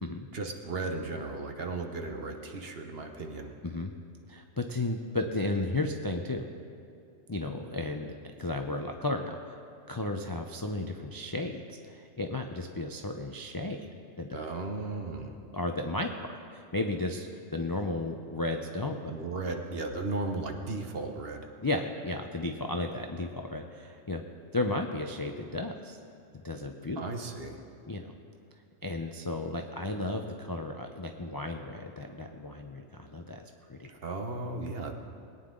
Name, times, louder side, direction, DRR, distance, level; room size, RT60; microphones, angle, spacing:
voice 1, 0.3-3.6 14.3-15.4 19.1-21.5 27.0-27.6 33.9-34.9, right 3 dB, 55° right, 4 dB, 1.2 m, -35 dB
voice 2, 4.3-6.5 7.3-8.1 8.4-9.6 9.9-13.9 14.2-14.4 15.5-17.3 17.5-19.1 21.6-24.2 24.5-26.0 26.4-27.0 27.9-28.1 28.8-33.9, left 2 dB, 30° left, 3 dB, 0.4 m, -34 dB
21.0 x 9.6 x 3.8 m, 2.6 s
omnidirectional pair, 1.3 m